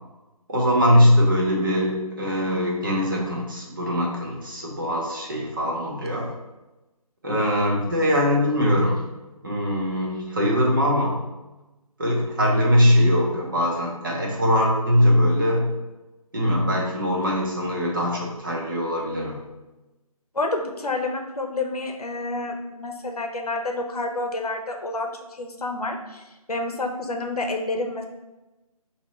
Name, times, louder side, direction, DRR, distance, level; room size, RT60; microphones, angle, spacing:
voice 1, 0.5-6.3 7.2-9.0 9.4-11.2 12.0-15.7 16.3-19.4, equal, 35° right, -3 dB, 0.9 m, -21 dB
voice 2, 20.3-28.0, left 2 dB, 75° left, 4 dB, 0.7 m, -29 dB
5.2 x 2.8 x 3.1 m, 1.0 s
figure-of-eight pair, 160°, 19 cm